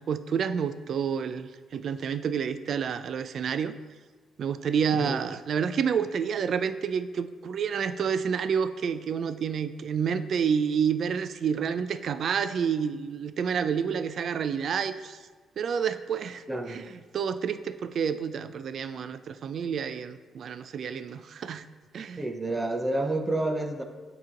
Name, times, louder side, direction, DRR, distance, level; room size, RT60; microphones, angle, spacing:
voice 1, 0.0-3.7 4.4-15.2 15.6-16.8 17.1-21.6 21.9-22.2, right 7 dB, 60° right, 12 dB, 0.3 m, -29 dB
voice 2, 16.5-16.8 22.2-23.8, right 2 dB, 15° right, 5 dB, 0.6 m, -29 dB
8.8 x 2.9 x 3.8 m, 1.4 s
cardioid pair, 90°, 0 cm